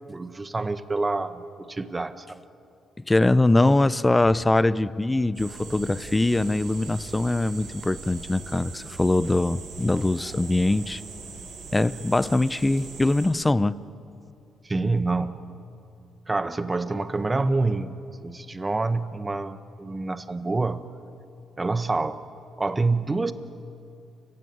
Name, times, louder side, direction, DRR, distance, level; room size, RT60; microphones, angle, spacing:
voice 1, 0.1-2.4 14.6-15.4 16.3-17.9 18.2-20.9 21.6-22.2 22.6-23.3, right 3 dB, 20° right, 12 dB, 1.2 m, -27 dB
voice 2, 3.1-11.0 11.7-13.8, left 2 dB, 15° left, 18 dB, 0.6 m, -22 dB
sound 1, 5.3-13.3, right 4 dB, 75° right, 7.7 m, -41 dB
29.0 x 16.0 x 9.2 m, 2.6 s
cardioid pair, 90°, 0 cm